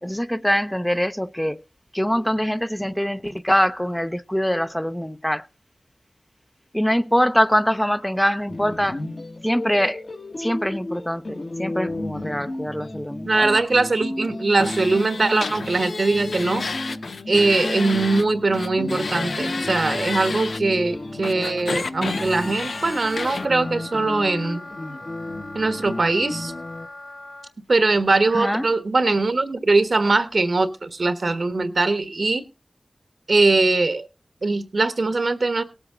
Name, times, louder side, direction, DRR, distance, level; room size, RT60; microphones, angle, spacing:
voice 1, 0.0-1.6 1.9-5.5 6.7-9.0 9.4-10.0 10.4-13.5 28.3-28.7, equal, 5° left, 0.6 m, -23 dB
sound 1, 8.5-26.9, left 1 dB, 55° left, 1.6 m, -33 dB
voice 2, 13.2-16.7 17.3-24.6 25.5-26.5 27.7-32.4 33.3-34.1 34.4-35.6, right 3 dB, 70° right, 1.3 m, -21 dB
sound 2, 14.6-18.2 18.5-20.6 21.2-23.5, left 4 dB, 90° left, 0.7 m, -31 dB
Wind instrument woodwind instrument, 22.3-27.5, left 1 dB, 40° left, 1.9 m, -40 dB
18.0 x 7.9 x 3.8 m
wide cardioid pair, 50°, 0 cm